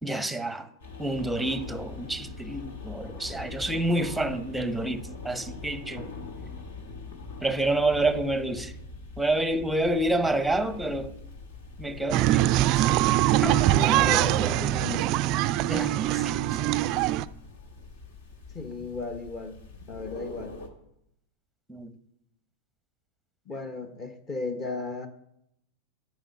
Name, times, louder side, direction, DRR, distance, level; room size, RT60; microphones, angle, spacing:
voice 1, 0.0-0.7 1.0-6.1 7.4-8.7 9.2-11.2 11.8-12.7 13.4-13.6 15.7-16.5 21.7-21.9, right 1 dB, 5° right, 0.9 m, -28 dB
sound 1, 0.8-20.7, left 3 dB, 60° left, 1.7 m, -43 dB
sound 2, 12.1-17.3, right 15 dB, 40° right, 0.4 m, -23 dB
voice 2, 13.7-15.1 18.5-19.6 19.9-20.6 23.5-25.1, left 3 dB, 25° left, 1.1 m, -35 dB
9.1 x 6.2 x 8.5 m
figure-of-eight pair, 90°, 0 cm